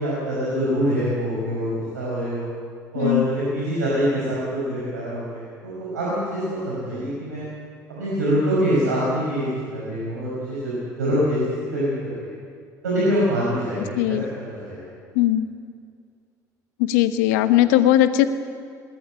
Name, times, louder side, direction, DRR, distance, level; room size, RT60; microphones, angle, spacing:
voice 1, 0.0-2.5 2.9-7.4 7.9-9.4 9.7-11.4 11.7-12.3 12.8-14.9, equal, 90° right, -7 dB, 5.7 m, -25 dB
voice 2, 15.1-15.5 16.8-18.3, left 13 dB, 75° left, 10 dB, 1.2 m, -18 dB
21.0 x 18.0 x 8.9 m, 2.2 s
hypercardioid pair, 60°, 9 cm